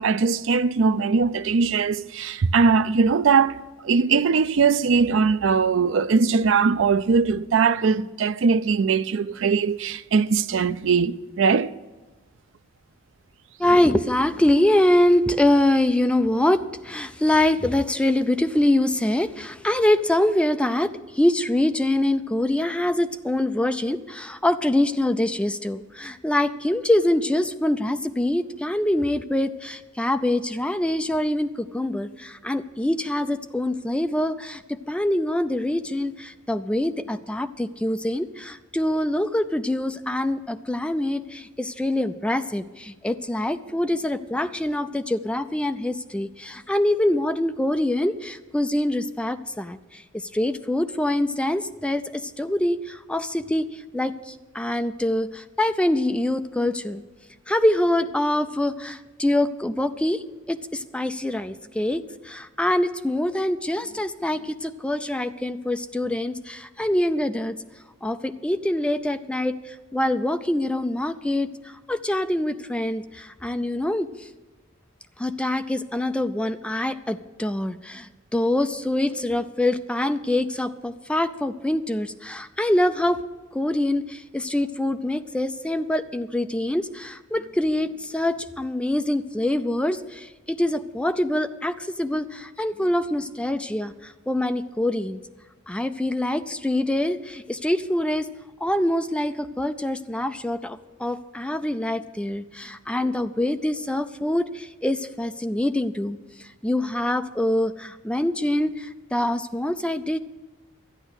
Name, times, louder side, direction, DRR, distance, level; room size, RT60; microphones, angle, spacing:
voice 1, 0.0-11.7, right 5 dB, 70° right, 0.5 m, -20 dB
voice 2, 13.6-57.0 57.5-67.6 68.0-74.3 75.2-83.2 83.5-95.2 95.7-98.3 98.6-110.2, left 1 dB, 5° left, 0.4 m, -24 dB
12.0 x 9.9 x 6.3 m
head